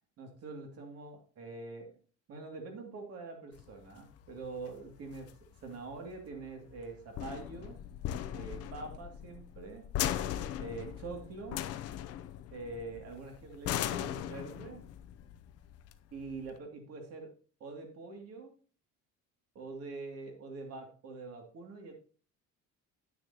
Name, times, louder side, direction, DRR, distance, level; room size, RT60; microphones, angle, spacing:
voice 1, 0.2-1.9 2.3-5.4 5.6-7.8 8.3-9.9 10.6-11.6 12.5-14.9 16.1-17.3 17.6-18.5 19.5-21.9, right 3 dB, 50° right, 3 dB, 2.4 m, -44 dB
sound 1, 3.6-16.6, left 11 dB, 55° left, 0.6 m, -39 dB
9.9 x 9.5 x 2.9 m, 0.39 s
cardioid pair, 155°, 30 cm